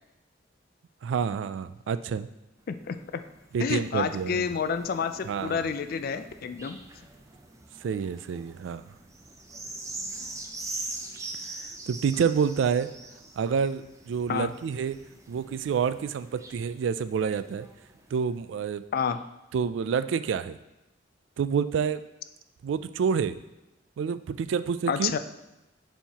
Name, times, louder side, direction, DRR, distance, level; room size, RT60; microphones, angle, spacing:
voice 1, 1.0-2.3 3.5-4.5 5.2-5.7 7.8-8.9 11.9-12.9 13.4-15.0 15.3-17.7 18.1-18.8 19.5-20.6 21.4-22.0 22.6-23.4 24.0-25.1, right 6 dB, 80° right, 14 dB, 0.3 m, -28 dB
sound 1, 2.6-18.5 19.1-19.2, right 2 dB, 15° right, 0.5 m, -43 dB
voice 2, 2.7-3.2 3.6-6.8 14.3-14.5 18.9-19.2 24.9-25.2, left 6 dB, 55° left, 10 dB, 0.4 m, -29 dB
7.1 x 5.5 x 2.9 m, 0.95 s
head